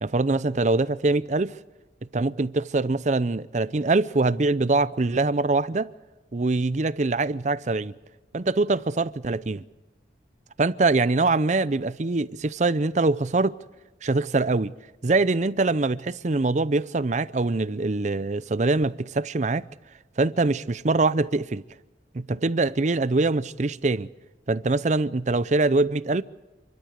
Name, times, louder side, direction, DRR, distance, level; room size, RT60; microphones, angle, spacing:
voice 1, 0.0-1.5 2.1-5.9 6.3-7.9 8.3-9.6 10.6-13.5 14.0-14.7 15.0-19.6 20.2-21.6 22.1-24.1 24.5-26.2, right 3 dB, 40° right, 0.6 m, -23 dB
29.0 x 12.5 x 8.1 m
head